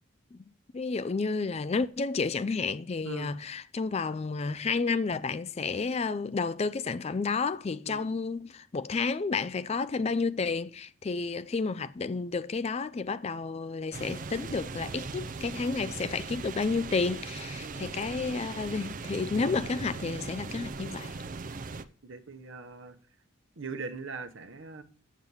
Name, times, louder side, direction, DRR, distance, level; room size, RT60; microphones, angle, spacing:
voice 1, 0.7-21.2, left 4 dB, 30° left, 0.3 m, -31 dB
voice 2, 3.0-3.4 7.8-8.1 17.6-17.9 22.0-23.0 23.6-24.8, right 4 dB, 70° right, 1.0 m, -41 dB
sound 1, 13.9-21.8, right 4 dB, 40° right, 0.5 m, -39 dB
7.9 x 7.2 x 5.5 m
head